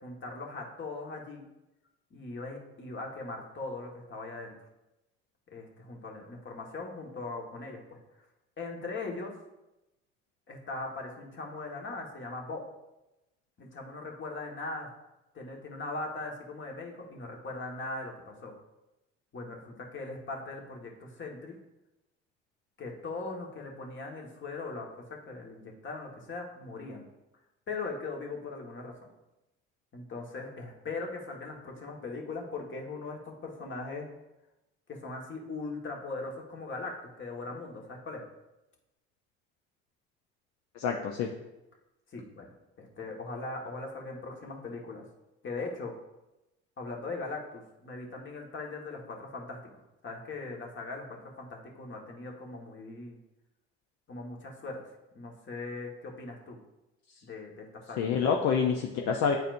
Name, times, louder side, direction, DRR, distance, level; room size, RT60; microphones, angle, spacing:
voice 1, 0.0-1.5 2.1-4.5 5.5-8.0 8.6-9.3 10.5-12.6 13.6-14.9 15.3-18.5 19.3-21.6 22.8-27.0 27.7-28.9 29.9-34.1 34.9-38.2 42.1-45.0 45.4-45.9 46.8-49.6 50.0-53.2 54.1-54.8 55.1-56.6 57.2-58.1, left 3 dB, 40° left, 0 dB, 1.5 m, -40 dB
voice 2, 40.8-41.3 58.0-59.4, left 6 dB, 70° left, 2 dB, 0.7 m, -27 dB
9.3 x 4.1 x 2.6 m, 0.96 s
supercardioid pair, 65°, 29 cm